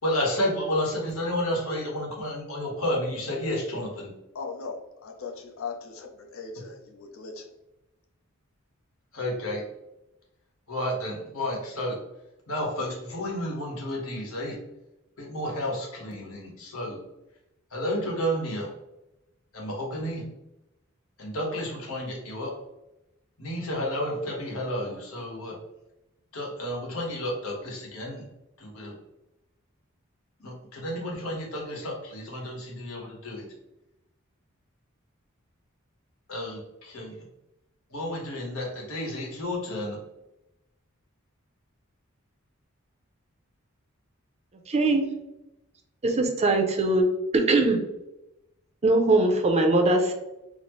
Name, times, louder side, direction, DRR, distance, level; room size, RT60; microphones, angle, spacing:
voice 1, 0.0-4.1 9.1-9.6 10.7-12.0 12.5-14.6 15.2-17.0 17.7-18.7 19.5-20.2 21.2-22.5 23.4-25.5 26.3-28.2 28.6-28.9 30.4-33.5 36.3-37.1 37.9-40.0, left 1 dB, 90° left, -2 dB, 1.1 m, -31 dB
voice 2, 4.3-7.5, left 5 dB, 70° left, 4 dB, 0.6 m, -39 dB
voice 3, 44.7-45.0 46.0-47.0 47.3-47.8 48.8-50.1, right 2 dB, 30° right, 3 dB, 0.5 m, -21 dB
4.1 x 2.0 x 3.0 m, 0.93 s
head